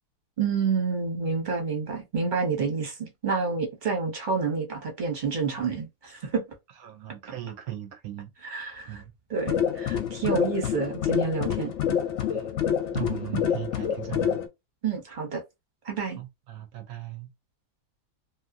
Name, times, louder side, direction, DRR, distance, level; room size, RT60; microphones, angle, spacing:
voice 1, 0.4-6.4 8.4-9.0 9.3-11.7 13.3-13.4 14.8-15.4 15.8-16.2, right 5 dB, 35° right, 0.9 m, -29 dB
voice 2, 6.8-8.3 8.9-9.1 12.3-12.6 12.9-14.4 16.2-17.3, right 13 dB, 70° right, 0.9 m, -38 dB
sound 1, 9.4-14.5, left 9 dB, 65° left, 0.8 m, -27 dB
2.7 x 2.5 x 2.6 m
omnidirectional pair, 1.8 m